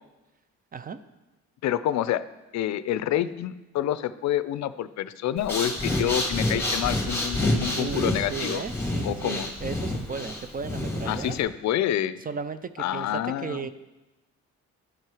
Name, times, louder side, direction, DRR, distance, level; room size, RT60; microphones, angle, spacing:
voice 1, 1.6-2.2 2.5-8.6 9.0-9.5 11.1-12.2 12.8-13.7, left 12 dB, 65° left, 15 dB, 0.4 m, -28 dB
Breathing, 5.4-11.4, left 1 dB, 10° left, 1.7 m, -28 dB
voice 2, 7.7-11.4 12.2-13.7, right 6 dB, 30° right, 13 dB, 0.4 m, -35 dB
11.5 x 4.5 x 4.8 m, 1.1 s
cardioid pair, 90°, 30 cm